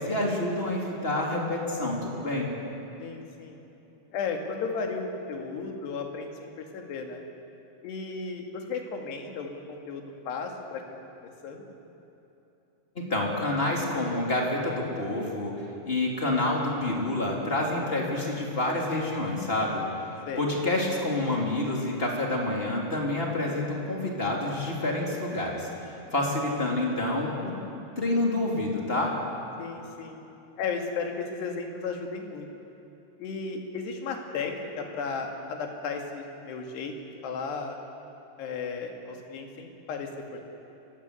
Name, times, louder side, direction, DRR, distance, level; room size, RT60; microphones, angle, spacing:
voice 1, 0.0-2.5 12.9-19.8 20.4-27.6 28.0-29.2, left 2 dB, 15° left, -1 dB, 2.5 m, -28 dB
voice 2, 3.0-3.6 4.1-7.2 7.8-10.8 11.2-11.8 20.3-20.5 29.6-30.2 30.6-32.5 33.2-36.9 37.2-37.8 38.4-40.4, left 5 dB, 60° left, 3 dB, 3.9 m, -34 dB
29.5 x 16.5 x 8.4 m, 3.0 s
omnidirectional pair, 5.7 m